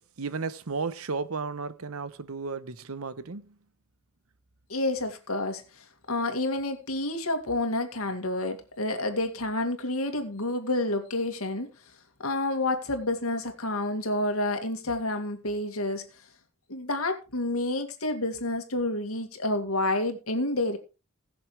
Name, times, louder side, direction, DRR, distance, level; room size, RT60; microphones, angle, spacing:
voice 1, 0.2-3.6, right 4 dB, 90° right, 0.9 m, -34 dB
voice 2, 4.7-11.7 12.2-16.0 16.7-20.8, left 2 dB, 85° left, 2.3 m, -29 dB
20.5 x 6.9 x 3.3 m
head